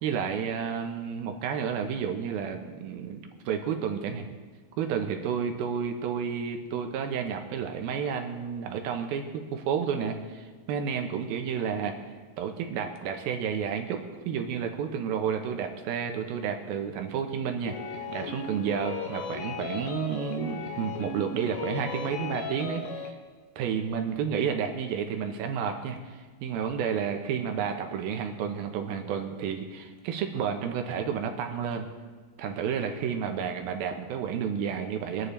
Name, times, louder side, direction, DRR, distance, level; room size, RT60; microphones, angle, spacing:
voice 1, 0.0-4.3 4.8-11.9 12.4-17.8 18.1-23.1 23.6-31.8 32.4-35.3, right 7 dB, 85° right, 5 dB, 2.9 m, -31 dB
sound 1, 17.7-23.1, left 5 dB, 65° left, 2.5 m, -36 dB
23.0 x 11.0 x 3.4 m, 1.4 s
omnidirectional pair, 4.2 m